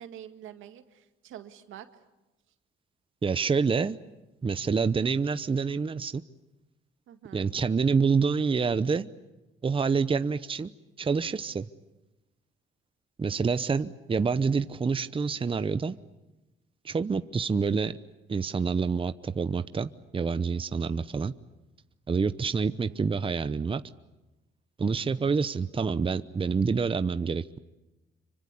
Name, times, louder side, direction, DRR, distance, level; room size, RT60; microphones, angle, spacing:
voice 1, 0.0-1.9 7.1-7.5 22.7-23.0 25.2-25.3, right 10 dB, 85° right, 8 dB, 2.1 m, -47 dB
voice 2, 3.2-4.0 4.4-6.2 7.3-9.1 9.6-10.7 11.0-11.7 13.2-16.0 16.8-18.0 18.3-21.3 22.1-23.8 24.8-27.6, right 5 dB, 25° right, 12 dB, 0.8 m, -27 dB
26.5 x 24.5 x 8.4 m, 1.0 s
cardioid pair, 90°, 20 cm